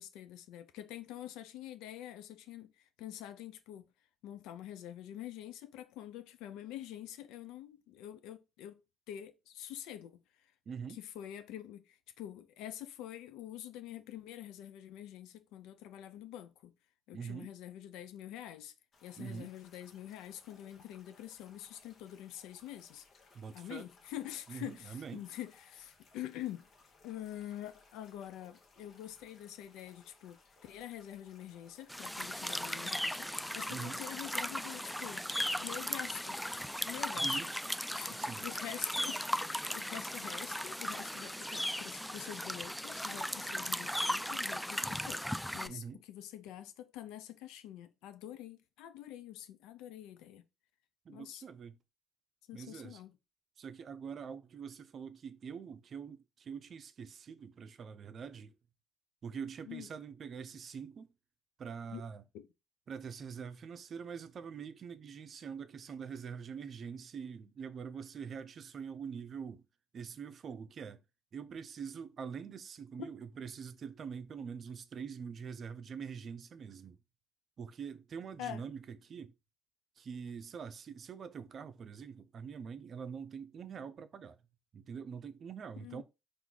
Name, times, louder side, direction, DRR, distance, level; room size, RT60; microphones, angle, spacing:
voice 1, 0.0-3.8 4.2-8.8 9.1-10.5 10.9-16.7 17.1-18.7 19.0-23.0 23.5-26.7 27.0-35.2 35.6-37.4 37.9-50.4 51.1-51.4 52.5-53.2 59.7-59.9 61.9-62.0 62.3-62.5 78.4-78.6 85.8-86.0, left 12 dB, 80° left, 0.5 m, -46 dB
voice 2, 10.7-11.0 17.1-17.5 19.2-19.5 23.3-23.9 24.5-25.2 33.7-34.0 37.2-37.5 38.1-38.5 45.7-46.0 51.0-51.8 52.5-53.0 53.6-58.5 59.2-61.1 61.6-62.2 62.9-69.6 69.9-71.0 71.3-77.0 77.6-79.3 80.0-84.4 84.7-86.0, right 6 dB, 55° right, 0.5 m, -44 dB
sound 1, 18.9-37.3, left 3 dB, 55° left, 1.1 m, -64 dB
sound 2, 31.9-45.7, equal, 5° left, 0.4 m, -37 dB
4.5 x 2.6 x 3.8 m
hypercardioid pair, 55°, 0 cm